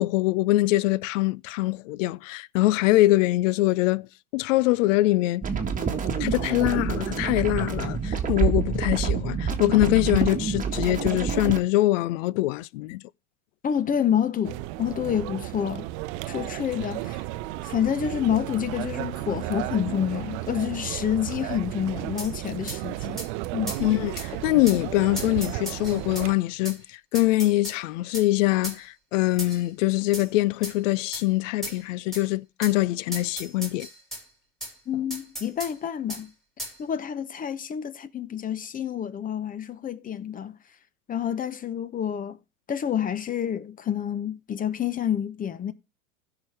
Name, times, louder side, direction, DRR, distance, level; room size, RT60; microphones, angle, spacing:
voice 1, 0.0-4.1 4.3-5.5 6.2-13.0 23.8-33.9, left 18 dB, 60° left, 0.6 m, -23 dB
sound 1, 5.4-11.6, right 6 dB, 20° right, 1.7 m, -27 dB
voice 2, 13.6-15.9 16.3-17.2 17.6-23.2 23.5-23.8 34.9-36.3 36.8-40.6 41.1-42.4 42.7-45.7, left 9 dB, 20° left, 0.8 m, -28 dB
sound 2, 14.4-26.3, right 17 dB, 50° right, 0.7 m, -34 dB
sound 3, 22.2-22.3 22.7-22.8 23.2-23.3 23.7-23.8 24.2-24.3 24.7-24.8 25.2-26.3 26.7-26.8 27.2-27.8 28.1-28.3 28.6-28.8 29.4-29.7 30.1-30.3 30.6-30.8 31.1-31.3 31.6-31.8 32.1-32.2 32.6-32.8 33.1-34.2 34.6-34.7 35.1-35.7 36.1-36.2 36.6-36.8, right 1 dB, ahead, 3.3 m, -36 dB
16.0 x 5.9 x 3.3 m
hypercardioid pair, 115°, 43 cm